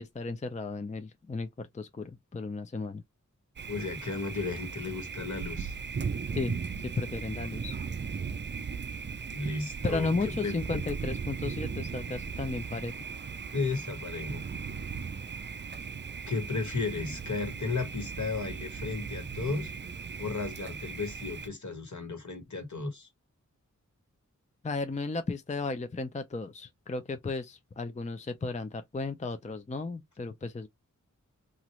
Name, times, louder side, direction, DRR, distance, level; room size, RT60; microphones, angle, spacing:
voice 1, 0.0-3.0 6.3-7.8 9.8-12.9 24.6-30.7, left 3 dB, 25° left, 0.4 m, -34 dB
Thunder, 3.6-21.5, right 5 dB, 35° right, 0.4 m, -37 dB
voice 2, 3.7-5.7 9.3-10.6 13.5-14.4 16.3-19.7 20.2-23.1, left 4 dB, 65° left, 1.4 m, -34 dB
2.9 x 2.5 x 3.0 m
wide cardioid pair, 70°, 31 cm